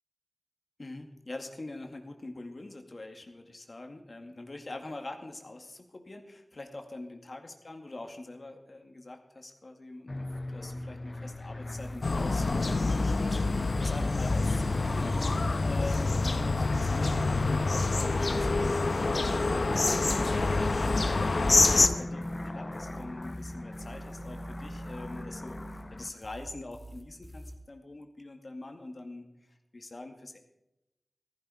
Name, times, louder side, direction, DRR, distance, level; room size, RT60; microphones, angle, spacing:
voice 1, 0.8-15.3 15.6-30.4, left 2 dB, 60° left, 4 dB, 2.1 m, -44 dB
sound 1, 10.1-26.1, left 2 dB, 40° left, 0.8 m, -39 dB
sound 2, 11.7-27.6, right 1 dB, 10° right, 4.2 m, -47 dB
sound 3, 12.0-21.9, left 3 dB, 75° left, 0.9 m, -26 dB
15.0 x 14.5 x 5.0 m, 0.89 s
wide cardioid pair, 45°, 0 cm